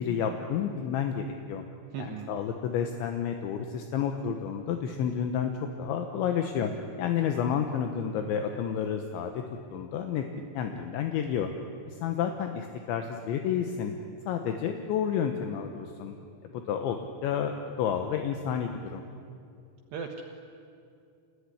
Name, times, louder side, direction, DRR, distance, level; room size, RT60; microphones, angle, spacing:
voice 1, 0.0-1.6 2.0-5.5 5.8-6.7 7.0-9.4 9.7-10.2 10.5-11.5 11.9-13.9 14.3-16.1 16.5-19.0, left 8 dB, 75° left, 5 dB, 3.3 m, -30 dB
voice 2, 1.9-2.3 7.2-7.5 19.9-20.2, right 6 dB, 70° right, 2 dB, 3.1 m, -38 dB
28.0 x 20.5 x 10.0 m, 2.5 s
omnidirectional pair, 5.8 m